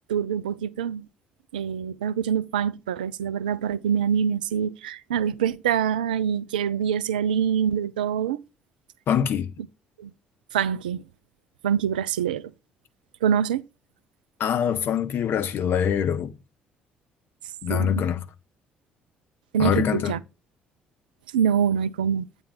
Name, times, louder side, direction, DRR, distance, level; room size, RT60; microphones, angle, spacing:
voice 1, 0.1-1.1 1.5-8.4 10.0-10.1 10.5-11.0 11.6-12.5 13.2-13.6 17.7-17.9 19.5-20.2 21.3-22.3, right 8 dB, 80° right, 0.3 m, -25 dB
voice 2, 9.1-9.5 14.4-16.4 17.6-18.2 19.6-20.1, left 8 dB, 50° left, 0.7 m, -24 dB
8.7 x 3.5 x 4.2 m
figure-of-eight pair, 50°, 5 cm